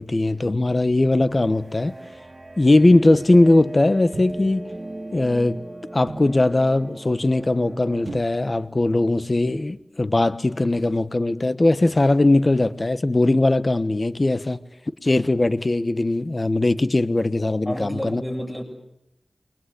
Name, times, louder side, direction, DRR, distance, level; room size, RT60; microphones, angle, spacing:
voice 1, 0.0-1.9 2.6-4.7 5.1-5.6 5.9-14.6 15.0-18.2, left 2 dB, 40° left, 1.3 m, -19 dB
Field of Dreams, 1.3-8.2, right 2 dB, 35° right, 2.2 m, -39 dB
sound 1, 4.1-4.7 6.1-6.5 8.1-8.7 9.0-9.1, right 3 dB, 65° right, 1.3 m, -37 dB
voice 2, 17.6-18.6, equal, 20° left, 8.0 m, -30 dB
28.5 x 23.5 x 8.6 m
wide cardioid pair, 50°, 0 cm